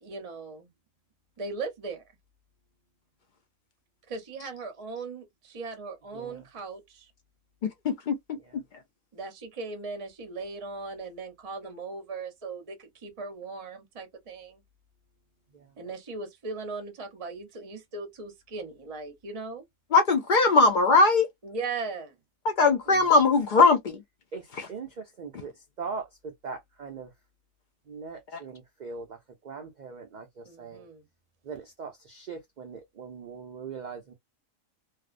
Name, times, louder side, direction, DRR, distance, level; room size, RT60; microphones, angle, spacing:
voice 1, 0.0-0.7 1.4-2.0 4.1-7.1 9.1-14.6 15.8-19.7 21.4-22.1 30.4-31.1, right 4 dB, 35° right, 0.6 m, -38 dB
voice 2, 6.1-6.4 8.4-8.6 15.5-15.7 22.9-23.2 24.3-25.5 25.8-27.1 27.9-29.2 29.4-30.9 31.4-34.1, right 5 dB, 85° right, 0.4 m, -40 dB
voice 3, 7.8-8.1 19.9-21.3 22.4-24.0 24.6-24.7 28.3-28.4, left 3 dB, 75° left, 0.4 m, -20 dB
2.5 x 2.0 x 2.4 m
omnidirectional pair, 1.4 m